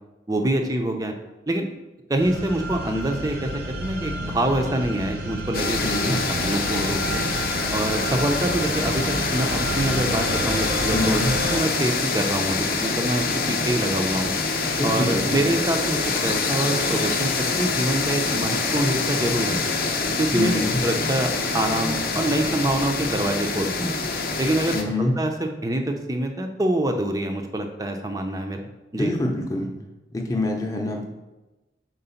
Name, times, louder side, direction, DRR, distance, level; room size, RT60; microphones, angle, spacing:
voice 1, 0.3-1.1 1.5-1.7 2.1-7.2 7.7-11.2 11.5-14.3 14.8-19.6 20.2-23.9 24.4-29.1, right 1 dB, 20° right, 4 dB, 0.5 m, -25 dB
sound 1, 2.2-11.6, right 1 dB, 55° right, 0.7 m, -30 dB
sound 2, 5.5-24.8, left 4 dB, 55° left, 0.6 m, -25 dB
voice 2, 5.8-6.2 10.9-11.3 14.8-15.4 20.3-20.8 24.7-25.1 29.0-29.7 30.1-31.0, left 2 dB, 20° left, 0 dB, 0.7 m, -25 dB
4.4 x 3.9 x 5.6 m, 1.1 s
head